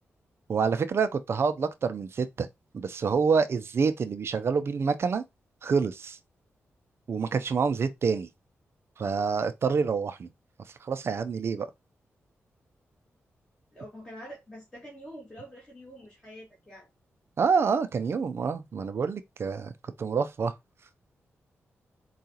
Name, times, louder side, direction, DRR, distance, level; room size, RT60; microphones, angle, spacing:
voice 1, 0.5-2.5 2.7-5.2 5.6-6.2 7.1-8.3 9.0-10.3 10.8-11.7 17.4-19.7 20.0-20.5, right 5 dB, 60° right, 0.5 m, -27 dB
voice 2, 13.7-16.9, equal, 15° left, 1.7 m, -46 dB
4.7 x 2.4 x 2.7 m
cardioid pair, 75°, 5 cm